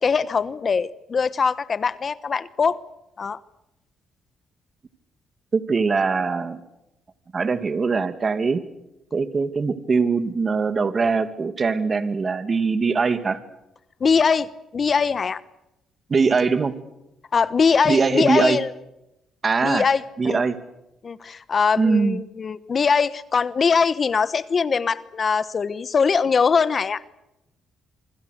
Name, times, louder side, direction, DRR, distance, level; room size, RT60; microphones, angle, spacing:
voice 1, 0.0-2.8 3.2-3.4 14.0-15.4 17.3-18.7 19.6-20.4 21.0-27.0, left 5 dB, 40° left, 16 dB, 1.1 m, -22 dB
voice 2, 5.5-6.6 7.3-8.6 9.1-13.4 16.1-16.8 17.8-18.6 19.4-19.9 20.2-20.6 21.8-22.2, right 4 dB, 35° right, 10 dB, 2.4 m, -22 dB
27.0 x 25.0 x 6.7 m, 0.88 s
cardioid pair, 90°, 0 cm